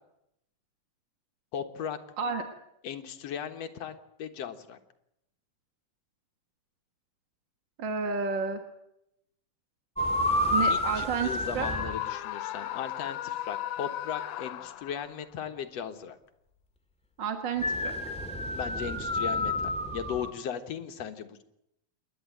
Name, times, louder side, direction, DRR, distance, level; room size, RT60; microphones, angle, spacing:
voice 1, 1.5-2.0 2.8-4.8 10.7-16.2 18.5-21.4, left 8 dB, 60° left, 7 dB, 2.3 m, -37 dB
voice 2, 7.8-8.6 10.5-11.3 11.5-11.7 17.2-17.6, right 5 dB, 45° right, 6 dB, 1.7 m, -30 dB
sound 1, 10.0-11.9 17.6-20.3, left 1 dB, 5° left, 1.5 m, -29 dB
Screaming, 11.5-15.2, left 13 dB, 75° left, 2.4 m, -36 dB
28.0 x 11.5 x 9.1 m, 0.81 s
omnidirectional pair, 3.7 m